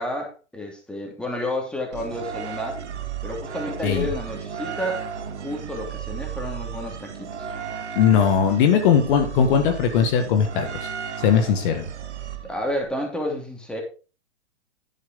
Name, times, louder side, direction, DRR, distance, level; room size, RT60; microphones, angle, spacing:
voice 1, 0.0-2.8 3.2-5.0 5.3-7.5 12.4-13.8, left 1 dB, 5° left, 1 dB, 2.8 m, -30 dB
sound 1, 1.9-12.8, right 8 dB, 80° right, 1.8 m, -34 dB
voice 2, 8.0-10.9 11.2-11.8, left 7 dB, 50° left, 6 dB, 1.8 m, -19 dB
11.0 x 8.0 x 3.7 m, 0.34 s
hypercardioid pair, 130°, 34 cm